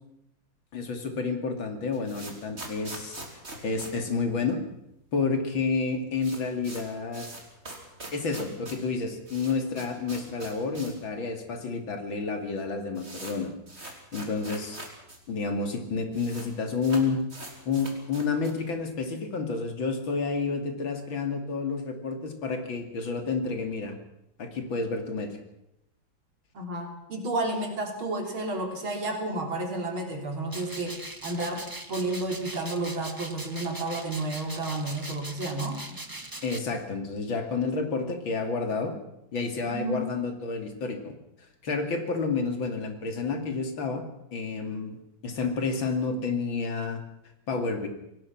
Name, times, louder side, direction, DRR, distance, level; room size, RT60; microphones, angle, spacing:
voice 1, 0.7-3.2 3.6-4.6 5.1-7.3 8.1-14.8 15.3-17.2 17.6-24.0 24.4-25.4 36.4-39.0 39.3-41.1 41.6-44.1 44.3-47.0 47.5-47.9, left 4 dB, 75° left, 5 dB, 3.3 m, -30 dB
sound 1, 1.7-4.9 5.2-5.3 5.5-5.6 5.9-11.1 11.4-11.5 12.2-12.3 12.5-15.2 15.5-15.6 15.7-16.5 16.8-18.7, right 2 dB, 30° right, 3.8 m, -43 dB
voice 2, 26.5-35.8 39.7-40.0, right 2 dB, 90° right, 3 dB, 4.3 m, -31 dB
sound 2, 30.5-36.6, right 2 dB, 15° right, 1.0 m, -41 dB
25.5 x 18.5 x 6.0 m, 0.82 s
omnidirectional pair, 2.2 m